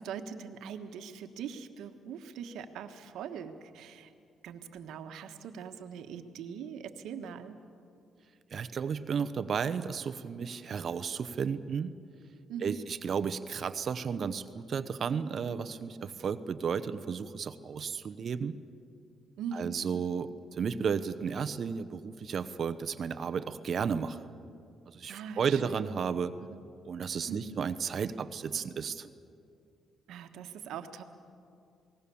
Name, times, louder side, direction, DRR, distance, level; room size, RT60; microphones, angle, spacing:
voice 1, 0.0-4.1 4.4-7.6 12.5-12.9 19.4-19.9 25.1-25.9 26.4-26.6 27.3-27.6 30.1-31.0, right 7 dB, 85° right, 7 dB, 1.5 m, -42 dB
voice 2, 8.5-11.9 12.6-18.5 19.5-24.3 24.9-26.3 26.8-29.1, right 6 dB, 55° right, 12 dB, 0.9 m, -33 dB
28.5 x 19.5 x 7.1 m, 2.4 s
cardioid pair, 90°, 0 cm